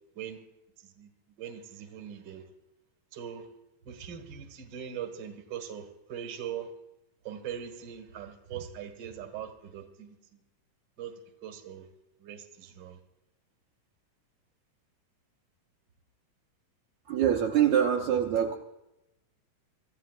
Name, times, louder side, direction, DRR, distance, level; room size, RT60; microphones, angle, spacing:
voice 1, 1.4-2.4 3.1-3.5 3.9-6.7 7.2-10.2 11.0-11.9 12.2-13.0, right 8 dB, 40° right, 4 dB, 1.9 m, -41 dB
voice 2, 17.1-18.6, right 9 dB, 70° right, 0 dB, 2.1 m, -24 dB
26.0 x 15.0 x 2.5 m, 0.90 s
omnidirectional pair, 4.0 m